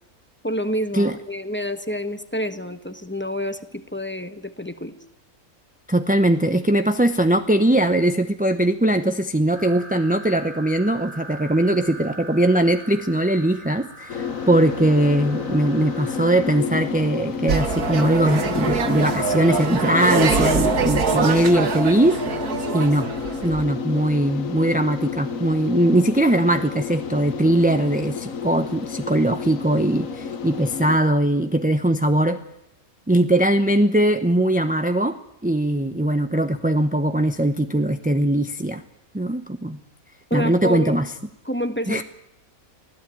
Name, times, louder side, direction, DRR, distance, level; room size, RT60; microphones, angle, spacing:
voice 1, 0.4-4.9 40.3-41.0 41.4-42.0, equal, 10° left, 9 dB, 1.2 m, -28 dB
voice 2, 5.9-22.2 22.7-23.1 23.4-32.4 33.1-35.2 35.4-38.8 39.1-39.8 40.3-41.1 41.9-42.0, right 1 dB, 10° right, 7 dB, 0.6 m, -20 dB
sound 1, 9.5-16.6, right 2 dB, 35° right, 2.7 m, -42 dB
sound 2, 14.1-31.0, left 6 dB, 65° left, 1.6 m, -31 dB
sound 3, 17.5-23.6, right 5 dB, 90° right, 2.0 m, -24 dB
24.5 x 16.0 x 9.3 m, 0.82 s
omnidirectional pair, 1.5 m